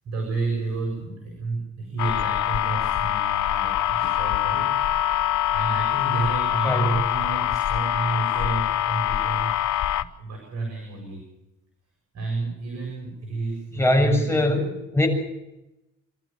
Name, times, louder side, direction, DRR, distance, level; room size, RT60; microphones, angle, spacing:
voice 1, 0.0-4.8 5.3-9.6 10.0-11.2 12.1-14.5, right 3 dB, 60° right, 0 dB, 7.6 m, -31 dB
sound 1, 2.0-10.0, left 12 dB, 75° left, 1.0 m, -24 dB
voice 2, 6.6-7.0 13.8-14.7 14.9-15.1, left 1 dB, 10° left, 0 dB, 7.3 m, -21 dB
27.0 x 13.5 x 7.4 m, 0.92 s
cardioid pair, 90°, 30 cm